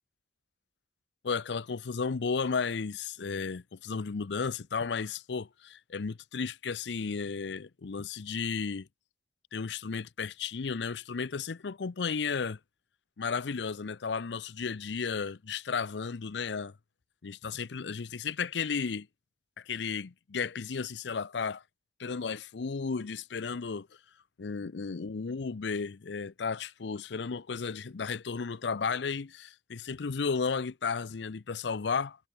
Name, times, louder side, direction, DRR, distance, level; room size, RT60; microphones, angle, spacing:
voice 1, 1.2-8.9 9.5-12.6 13.2-16.7 17.2-19.1 19.6-21.6 22.0-23.9 24.4-32.2, left 5 dB, 85° left, 0.6 m, -34 dB
head